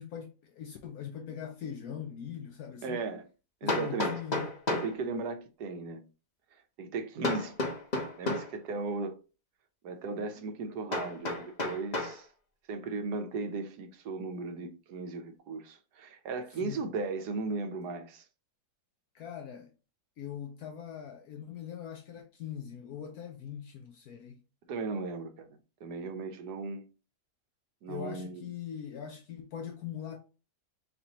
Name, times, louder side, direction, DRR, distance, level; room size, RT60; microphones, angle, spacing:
voice 1, 0.0-3.0 3.6-4.6 16.6-16.8 19.1-19.7 20.2-24.4 27.9-30.2, left 8 dB, 75° left, 1.1 m, -41 dB
Hammer, 2.1-2.2 3.7-5.0 7.2-8.5 10.9-12.2, left 2 dB, 30° left, 0.9 m, -32 dB
voice 2, 2.8-3.2 3.6-4.1 4.7-6.0 6.8-7.5 8.2-9.2 9.8-12.3 12.7-18.2 24.7-25.5 25.8-26.9 27.8-28.5, right 3 dB, 90° right, 1.4 m, -36 dB
4.2 x 4.2 x 2.9 m
omnidirectional pair, 1.7 m